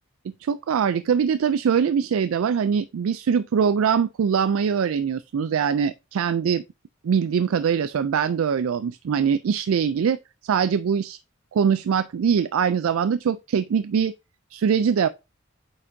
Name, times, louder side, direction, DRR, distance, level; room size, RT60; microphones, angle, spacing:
voice 1, 0.4-6.6 7.0-11.2 11.5-14.1 14.5-15.1, right 7 dB, 80° right, 0.4 m, -22 dB
8.8 x 6.2 x 2.7 m
head